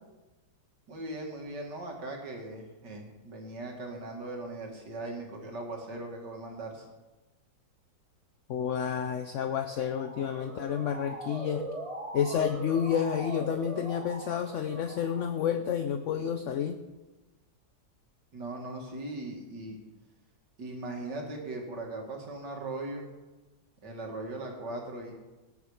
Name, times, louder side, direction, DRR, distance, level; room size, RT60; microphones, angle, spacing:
voice 1, 0.9-6.9 18.3-19.8 20.6-23.1 23.8-25.1, right 2 dB, 80° right, 1 dB, 2.7 m, -39 dB
voice 2, 8.5-11.7 12.1-16.8, left 8 dB, 60° left, 8 dB, 0.8 m, -30 dB
Motor vehicle (road) / Siren, 9.6-15.5, right 1 dB, 20° right, 1.3 m, -41 dB
19.0 x 7.2 x 4.9 m, 1.1 s
omnidirectional pair, 1.8 m